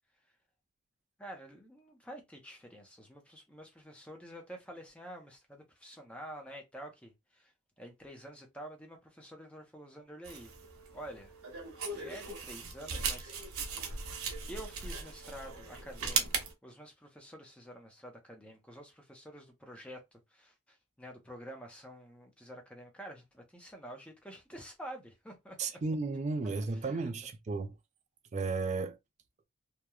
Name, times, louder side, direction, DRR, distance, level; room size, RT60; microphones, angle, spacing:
voice 1, 1.2-7.5 7.8-10.5 10.9-11.3 11.9-13.7 14.5-16.3 16.6-25.6 26.4-26.5 26.8-27.1, right 1 dB, 5° left, 0.6 m, -48 dB
sound 1, 10.3-16.5, right 5 dB, 85° right, 0.8 m, -38 dB
voice 2, 25.6-27.8 28.3-29.0, right 3 dB, 30° right, 0.3 m, -34 dB
2.9 x 2.2 x 2.3 m
head